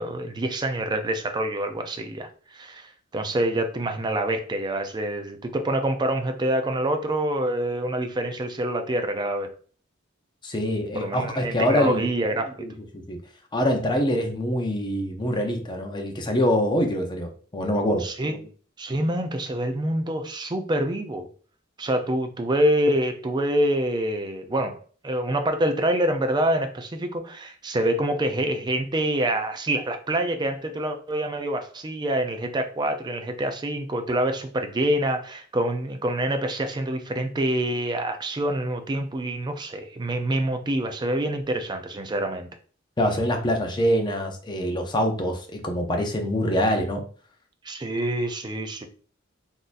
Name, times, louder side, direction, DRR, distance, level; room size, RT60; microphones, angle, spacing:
voice 1, 0.0-2.3 2.5-9.5 10.9-12.7 18.0-18.4 18.8-21.3 21.8-24.8 25.0-42.5 47.6-48.9, right 1 dB, 20° right, 6 dB, 0.4 m, -26 dB
voice 2, 10.4-12.0 12.6-13.2 13.5-18.0 43.0-47.0, equal, 20° left, 3 dB, 0.6 m, -25 dB
3.9 x 2.6 x 2.5 m, 0.43 s
head